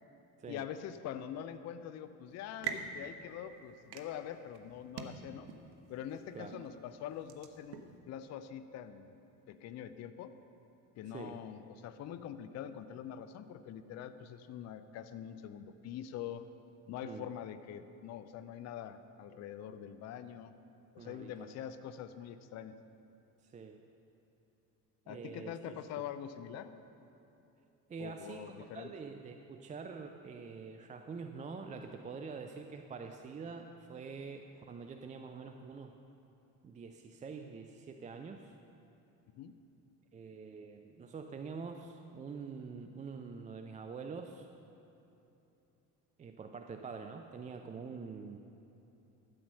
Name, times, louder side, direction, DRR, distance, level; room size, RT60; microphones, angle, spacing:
voice 1, 0.5-5.5 5.9-9.2 9.5-10.3 11.0-16.4 16.9-20.5 20.9-22.7 25.1-26.7 28.0-28.9 39.4-39.6, left 9 dB, 35° left, 11 dB, 0.5 m, -44 dB
sound 1, 2.3-8.0, right 7 dB, 55° right, 0.9 m, -46 dB
voice 2, 11.1-11.4 17.0-17.3 21.0-21.6 23.4-23.8 25.1-25.8 27.9-35.9 36.6-38.5 40.1-44.5 46.2-48.4, right 5 dB, 15° right, 6 dB, 0.4 m, -45 dB
12.5 x 7.8 x 5.5 m, 3.0 s
figure-of-eight pair, 50°, 47 cm